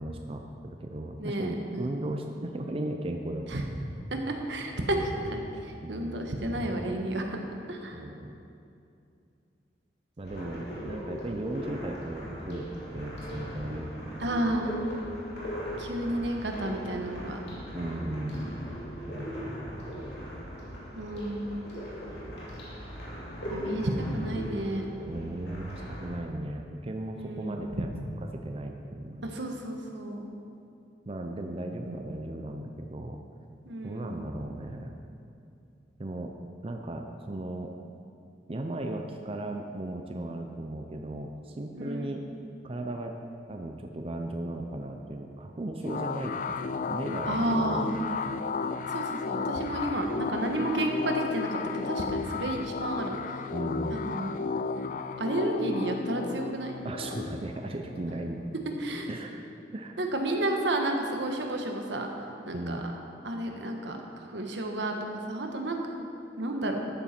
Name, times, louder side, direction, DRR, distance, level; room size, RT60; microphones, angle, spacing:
voice 1, 0.0-3.7 5.8-6.3 7.9-8.4 10.2-14.3 17.7-18.5 19.1-20.2 25.1-27.9 28.3-29.3 31.1-33.2 33.8-34.9 36.0-36.3 36.6-37.7 38.5-42.2 42.6-43.1 43.5-48.4 53.5-54.0 56.8-58.4 59.1-59.4 59.7-60.0 62.5-62.8, right 1 dB, 35° right, 4 dB, 0.6 m, -36 dB
voice 2, 1.2-1.9 3.5-3.6 4.1-7.4 7.7-8.0 10.8-10.9 14.2-14.9 15.8-17.4 20.9-21.6 23.5-24.9 27.2-27.7 29.2-30.3 33.6-34.2 41.7-42.2 47.3-47.9 48.9-53.4 53.9-54.3 55.2-56.7 58.8-59.1 60.0-62.1 62.5-62.8 63.2-65.8 66.4-66.8, right 1 dB, 80° right, 3 dB, 1.3 m, -31 dB
sound 1, 10.2-26.2, equal, 65° left, 2.9 m, -39 dB
sound 2, 45.9-59.1, left 5 dB, 45° left, 0.3 m, -34 dB
13.0 x 9.0 x 4.5 m, 2.6 s
head